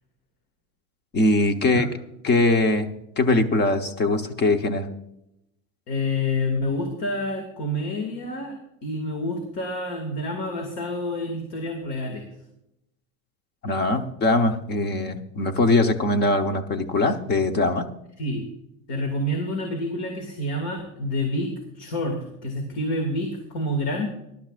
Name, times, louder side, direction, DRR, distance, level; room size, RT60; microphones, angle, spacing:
voice 1, 1.1-1.9 2.2-2.9 3.2-4.9 13.6-17.9, left 2 dB, 25° left, 8 dB, 1.0 m, -21 dB
voice 2, 5.9-12.2 18.2-18.4 18.9-24.1, left 1 dB, 50° left, 4 dB, 2.3 m, -28 dB
20.0 x 12.0 x 2.5 m, 0.82 s
cardioid pair, 160°, 42 cm